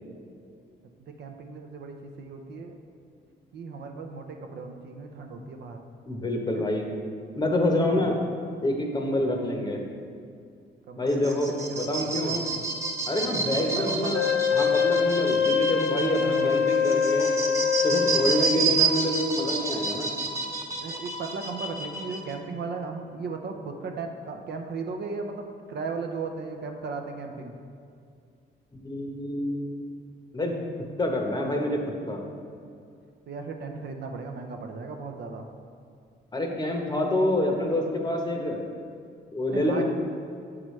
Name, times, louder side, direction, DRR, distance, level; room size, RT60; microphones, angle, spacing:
voice 1, 1.0-2.8 3.5-5.8 6.5-6.7 7.9-8.2 9.1-9.3 10.9-12.6 13.6-14.2 16.1-16.6 18.3-18.5 20.8-27.5 33.3-35.5 39.5-39.8, right 4 dB, 60° right, 4 dB, 0.6 m, -36 dB
voice 2, 6.1-6.9 7.4-8.2 8.6-9.9 11.0-12.3 13.1-14.3 14.6-17.3 17.8-20.1 28.8-29.8 30.3-30.5 31.0-32.2 36.3-38.7 39.3-39.8, left 1 dB, 20° left, 1 dB, 0.9 m, -27 dB
sound 1, 11.1-22.3, right 4 dB, 15° right, 0.8 m, -30 dB
Wind instrument woodwind instrument, 14.1-18.5, left 6 dB, 55° left, 0.5 m, -24 dB
7.4 x 4.8 x 3.1 m, 2.3 s
cardioid pair, 90°, 20 cm